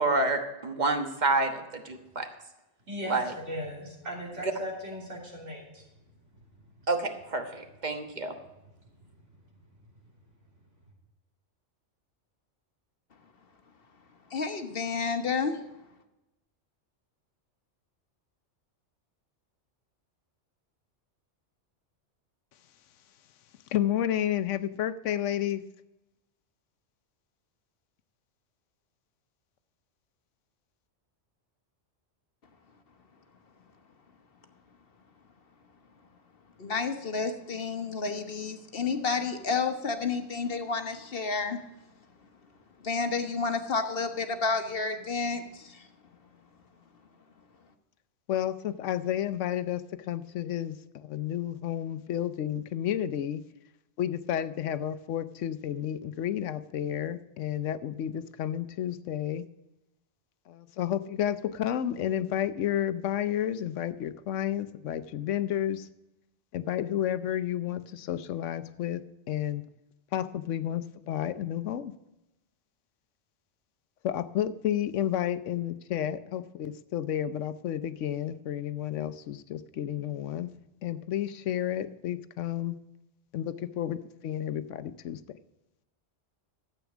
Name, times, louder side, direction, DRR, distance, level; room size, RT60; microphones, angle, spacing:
voice 1, 0.0-2.3 3.1-3.3 6.9-8.3, right 3 dB, 40° right, 5 dB, 1.4 m, -28 dB
voice 2, 2.9-6.7 8.4-8.6 8.8-9.1, equal, 80° right, -2 dB, 3.7 m, -39 dB
voice 3, 14.3-15.6 36.6-41.6 42.8-45.9, left 4 dB, 55° left, 7 dB, 1.2 m, -30 dB
voice 4, 23.7-25.6 48.3-53.4 54.0-59.4 60.5-65.9 66.5-69.7 70.1-71.9 74.0-80.5 80.8-82.8 83.3-84.0 84.2-85.4, left 11 dB, 90° left, 14 dB, 1.0 m, -31 dB
12.5 x 8.2 x 6.0 m, 0.97 s
omnidirectional pair, 1.2 m